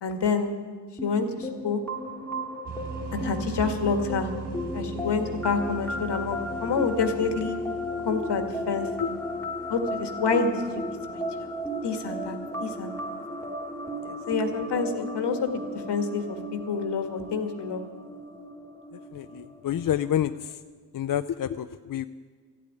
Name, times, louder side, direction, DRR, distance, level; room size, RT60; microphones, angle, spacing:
voice 1, 0.0-0.5 1.0-1.8 3.1-4.3 4.7-7.6 8.0-8.9 9.7-10.6 11.1-11.2 11.8-12.9 14.3-17.8, left 5 dB, 75° left, 5 dB, 1.8 m, -28 dB
sound 1, 1.0-20.5, left 1 dB, 5° left, 2.1 m, -35 dB
sound 2, 2.6-12.1, right 6 dB, 80° right, 1.8 m, -41 dB
voice 2, 19.1-20.6 20.9-22.1, left 10 dB, 55° left, 10 dB, 0.5 m, -29 dB
14.0 x 8.5 x 9.9 m, 1.5 s
cardioid pair, 75°, 41 cm